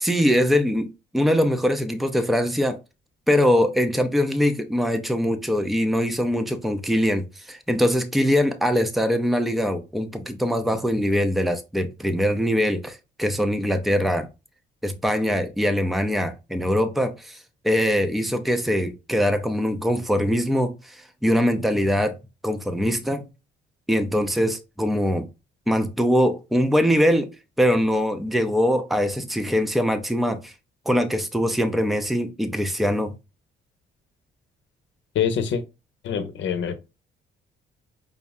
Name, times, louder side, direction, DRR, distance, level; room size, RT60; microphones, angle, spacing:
voice 1, 0.0-2.8 3.3-14.3 14.8-17.4 17.6-21.0 21.2-22.2 22.4-23.2 23.9-25.3 25.7-30.5 30.9-33.2, equal, ahead, 0.6 m, -22 dB
voice 2, 35.1-35.6 36.0-36.7, left 7 dB, 70° left, 0.8 m, -24 dB
5.4 x 2.0 x 3.6 m
cardioid pair, 90°, 20 cm